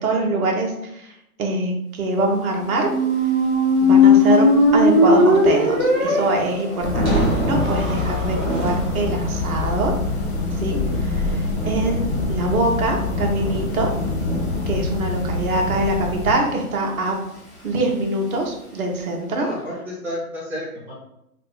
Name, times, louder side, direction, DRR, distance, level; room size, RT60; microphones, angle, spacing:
voice 1, 0.0-2.9 3.8-4.5 4.7-9.9 10.6-13.9 14.7-17.2 17.6-19.5, right 2 dB, 65° right, 1 dB, 1.1 m, -24 dB
Thunder / Rain, 2.6-19.2, equal, 15° left, 1.0 m, -32 dB
Squeak, 2.8-8.7, left 2 dB, 25° right, 1.0 m, -18 dB
sound 1, 6.8-16.4, left 3 dB, 45° left, 0.6 m, -25 dB
voice 2, 10.7-11.1 19.4-20.9, left 1 dB, 5° right, -7 dB, 0.6 m, -31 dB
3.0 x 2.5 x 3.6 m, 0.82 s
hypercardioid pair, 145°, 45 cm